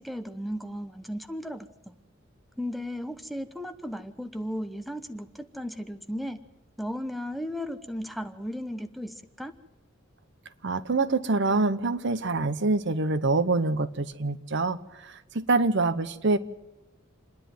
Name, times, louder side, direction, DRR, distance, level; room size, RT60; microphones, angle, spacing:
voice 1, 0.0-1.7 2.6-6.4 6.8-9.5, equal, ahead, 8 dB, 0.8 m, -35 dB
voice 2, 10.6-16.4, right 3 dB, 60° right, 13 dB, 0.9 m, -25 dB
27.5 x 10.5 x 9.4 m, 1.0 s
head